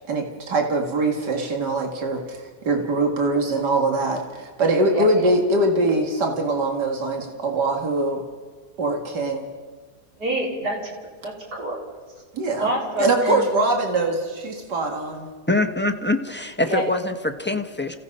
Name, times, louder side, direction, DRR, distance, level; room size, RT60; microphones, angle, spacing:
voice 1, 0.1-8.2 8.8-9.5 12.3-12.7 13.0-15.3, right 2 dB, 85° right, 2 dB, 2.7 m, -23 dB
voice 2, 10.2-10.8 11.2-11.8 12.6-13.4 16.7-16.9, right 1 dB, 65° right, -3 dB, 5.1 m, -26 dB
voice 3, 15.5-18.0, left 2 dB, 10° left, 5 dB, 0.8 m, -24 dB
29.5 x 16.5 x 5.5 m, 1.5 s
omnidirectional pair, 1.8 m